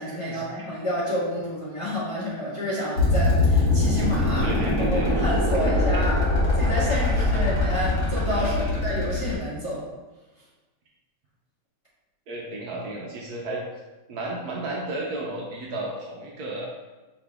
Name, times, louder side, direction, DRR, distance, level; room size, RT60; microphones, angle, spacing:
voice 1, 0.0-6.2 6.6-9.8, left 1 dB, 20° left, -10 dB, 1.1 m, -29 dB
sound 1, 3.0-9.3, left 2 dB, 45° left, 1.3 m, -22 dB
voice 2, 4.4-5.2 5.6-5.8 7.2-7.4 8.3-8.7 12.3-13.6 14.1-16.7, right 2 dB, 65° right, -2 dB, 1.1 m, -33 dB
5.0 x 3.0 x 3.5 m, 1.1 s
omnidirectional pair, 1.9 m